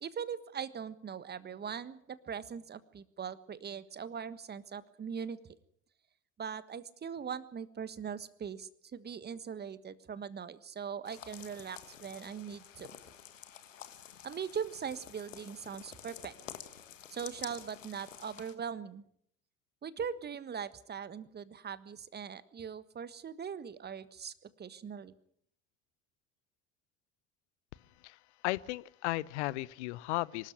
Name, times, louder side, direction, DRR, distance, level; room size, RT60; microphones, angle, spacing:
voice 1, 0.0-5.5 6.4-12.9 14.2-16.3 17.1-19.1 19.8-25.1, right 7 dB, 25° right, 16 dB, 1.4 m, -41 dB
sound 1, 11.0-18.5, left 9 dB, 80° left, 1.6 m, -50 dB
voice 2, 28.4-30.5, left 19 dB, 60° left, 23 dB, 0.8 m, -35 dB
24.5 x 13.0 x 9.8 m, 0.68 s
figure-of-eight pair, 65°, 38 cm